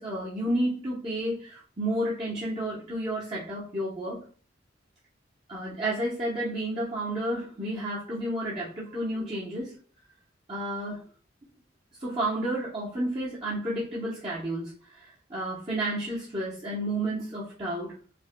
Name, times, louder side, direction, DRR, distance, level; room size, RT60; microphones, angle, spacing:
voice 1, 0.0-4.2 5.5-9.7 10.5-11.0 12.0-17.9, right 1 dB, 30° right, -8 dB, 1.0 m, -31 dB
5.2 x 2.4 x 2.2 m, 0.39 s
head